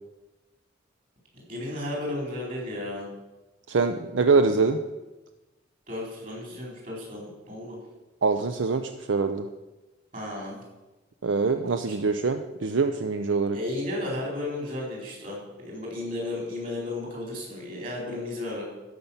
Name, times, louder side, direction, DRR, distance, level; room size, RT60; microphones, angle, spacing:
voice 1, 1.3-3.1 5.9-7.8 10.1-10.6 11.9-12.0 13.5-18.6, left 1 dB, 45° right, -2 dB, 4.3 m, -34 dB
voice 2, 3.7-4.8 8.2-9.5 11.2-13.6, right 4 dB, 80° right, 8 dB, 0.5 m, -24 dB
12.5 x 5.4 x 7.2 m, 1.1 s
head